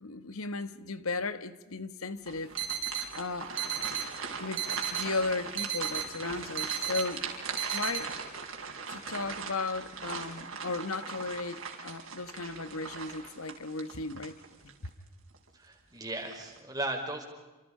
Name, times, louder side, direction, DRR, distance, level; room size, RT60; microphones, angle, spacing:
voice 1, 0.0-2.5 2.8-2.9 3.1-3.6 4.4-7.3 7.7-8.1 8.9-14.4 14.6-14.7, left 3 dB, 85° left, 1.4 m, -36 dB
sound 1, 2.2-14.9 15.3-15.5 16.1-16.6, right 5 dB, 75° right, 4.7 m, -40 dB
sound 2, 2.6-3.1 3.6-4.1 4.6-5.1 5.6-6.1 6.6-7.1 7.6-8.0, right 9 dB, 60° right, 3.7 m, -33 dB
voice 2, 15.5-17.3, right 1 dB, 20° right, 4.5 m, -36 dB
29.0 x 27.5 x 5.0 m
head